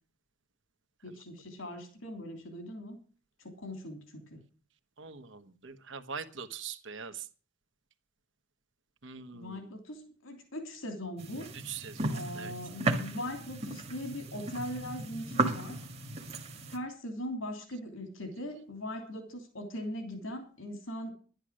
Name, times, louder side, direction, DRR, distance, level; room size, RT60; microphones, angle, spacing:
voice 1, 1.0-3.0 3.4-4.4 9.3-11.5 12.1-15.8 16.7-21.1, left 1 dB, 70° left, 5 dB, 3.1 m, -40 dB
voice 2, 5.0-7.3 9.0-9.7 11.5-12.5, right 6 dB, 60° right, 9 dB, 1.2 m, -43 dB
sound 1, 11.2-16.8, right 2 dB, 30° right, 1.5 m, -35 dB
11.5 x 10.5 x 6.3 m, 0.38 s
head